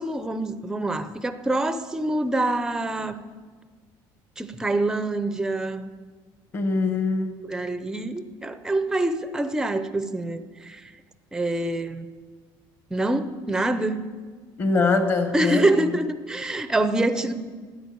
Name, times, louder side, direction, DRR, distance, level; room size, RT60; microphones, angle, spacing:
voice 1, 0.0-3.2 4.4-5.9 7.4-10.8 11.3-12.1 12.9-14.1 15.3-17.3, right 2 dB, 5° right, 11 dB, 0.6 m, -25 dB
voice 2, 6.5-7.3 14.6-15.7 16.9-17.0, left 3 dB, 25° left, 8 dB, 1.3 m, -23 dB
13.0 x 10.0 x 9.4 m, 1.5 s
cardioid pair, 170°, 9 cm